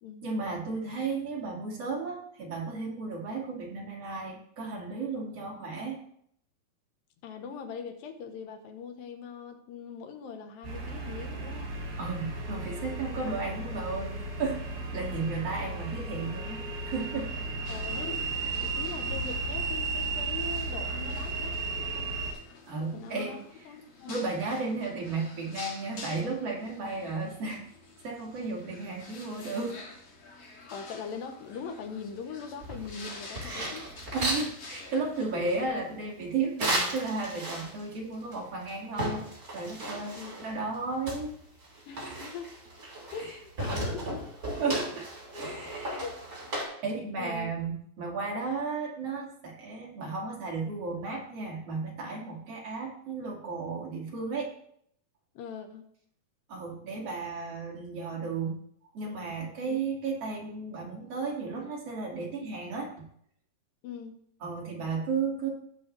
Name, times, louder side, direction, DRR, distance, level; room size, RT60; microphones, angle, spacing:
voice 1, 0.2-6.0 12.0-14.7 14.9-17.3 18.0-18.2 22.7-23.4 24.1-27.6 28.0-29.8 33.2-33.5 34.1-39.3 39.5-41.4 42.0-42.3 43.1-43.3 44.6-45.1 45.3-46.0 46.8-54.5 56.5-58.6 58.9-63.0 64.4-65.5, right 4 dB, 45° right, -3 dB, 3.1 m, -34 dB
voice 2, 7.2-11.7 17.7-18.3 18.5-22.1 22.9-23.4 23.7-24.2 30.7-33.9 34.2-34.4 40.1-40.4 41.9-42.6 43.1-44.3 45.9-46.2 47.2-47.5 55.4-55.9 59.7-59.8 63.8-64.2, left 6 dB, 75° left, 6 dB, 2.7 m, -41 dB
sound 1, 10.6-22.3, right 3 dB, 75° right, 4.9 m, -34 dB
sound 2, 17.7-35.7, left 3 dB, 50° left, 2.5 m, -47 dB
sound 3, 32.6-34.5 36.6-37.9 38.3-38.4 38.7-40.5 41.1-43.3 43.6-46.6, right 1 dB, 25° right, 2.8 m, -34 dB
18.5 x 6.3 x 3.3 m, 0.68 s
omnidirectional pair, 4.2 m